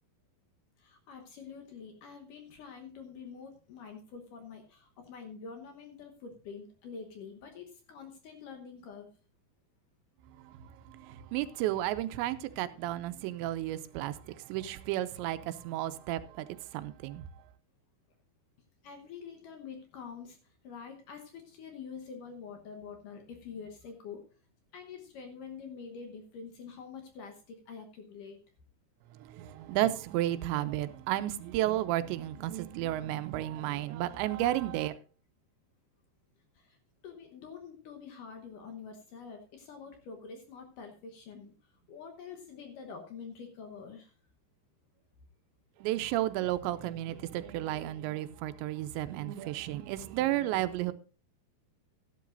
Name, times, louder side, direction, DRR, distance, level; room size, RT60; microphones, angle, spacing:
voice 1, 0.8-9.1 18.8-20.4 20.6-24.2 24.7-28.4 36.6-36.8 37.0-41.5 41.9-44.1, left 6 dB, 70° left, 2.1 m, -46 dB
voice 2, 10.4-16.5 16.7-17.2 29.3-34.9 45.8-50.9, right 14 dB, 85° right, 3.0 m, -32 dB
14.0 x 11.5 x 2.6 m
omnidirectional pair, 5.1 m